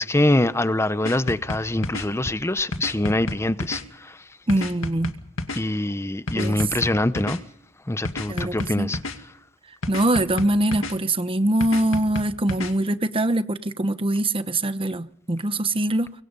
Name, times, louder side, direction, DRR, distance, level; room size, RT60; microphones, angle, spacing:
voice 1, 0.0-4.2 5.5-7.4 7.9-9.0, left 1 dB, 15° left, 0.8 m, -24 dB
sound 1, 1.0-2.1 2.7-3.8 4.5-5.6 6.3-7.4 8.0-9.2 9.8-10.9 11.6-12.7, left 2 dB, 80° left, 2.2 m, -30 dB
voice 2, 4.5-5.1 6.3-6.6 8.3-8.9 9.9-16.1, right 1 dB, 25° right, 1.0 m, -23 dB
24.0 x 23.5 x 5.4 m
head